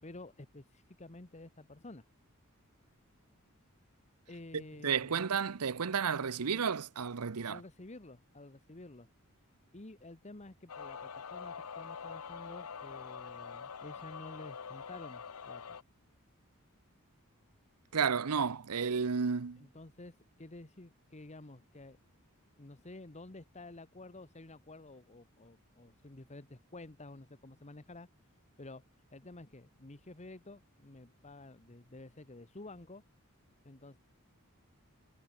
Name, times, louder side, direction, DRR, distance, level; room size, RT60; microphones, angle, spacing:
voice 1, 0.0-2.0 4.3-5.2 7.5-9.1 9.7-15.8 19.6-22.0 22.6-28.1 28.6-28.8 29.1-33.0 33.6-34.0, left 2 dB, 30° left, 1.4 m, -51 dB
voice 2, 4.5-7.6 17.9-19.7, right 6 dB, 85° right, 0.8 m, -32 dB
sound 1, 10.7-15.8, left 6 dB, 80° left, 0.8 m, -45 dB
head